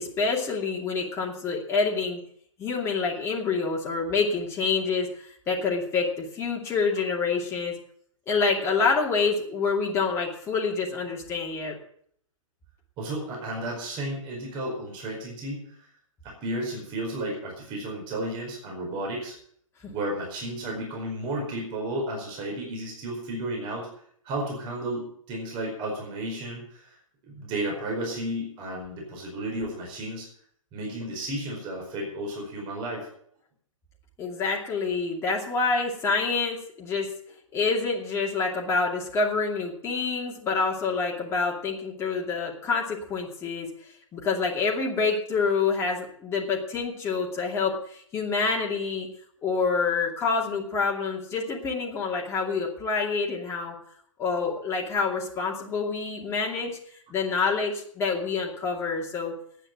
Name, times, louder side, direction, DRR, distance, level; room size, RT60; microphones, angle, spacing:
voice 1, 0.0-2.2 2.6-7.7 8.3-11.7 19.8-19.9 34.2-37.1 37.5-43.7 44.1-49.1 49.4-53.7 54.2-56.8 57.1-59.3, left 4 dB, 15° left, -2 dB, 2.6 m, -27 dB
voice 2, 13.0-15.7 16.2-19.3 19.9-23.9 24.2-26.9 27.2-30.3 30.7-33.1, right 1 dB, 25° right, -1 dB, 4.8 m, -33 dB
10.0 x 9.2 x 9.1 m, 0.64 s
figure-of-eight pair, 120°, 18 cm